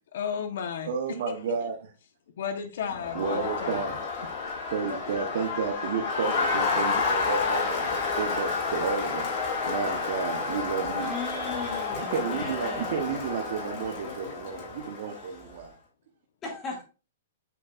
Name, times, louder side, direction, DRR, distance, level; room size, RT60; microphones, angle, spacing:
voice 1, 0.1-0.9 1.5-1.6 2.4-4.0 14.0-14.7, left 7 dB, 70° left, 7 dB, 1.1 m, -34 dB
voice 2, 0.8-1.8 3.1-4.0 4.7-9.3 9.7-11.1 11.9-15.7, right 6 dB, 60° right, 1 dB, 1.0 m, -32 dB
Crowd, 2.9-15.4, left 4 dB, 40° left, 2.7 m, -30 dB
voice 3, 11.0-13.0 16.4-16.8, left 3 dB, 20° left, -2 dB, 2.2 m, -37 dB
8.1 x 4.7 x 2.5 m, 0.32 s
hypercardioid pair, 155°, 0 cm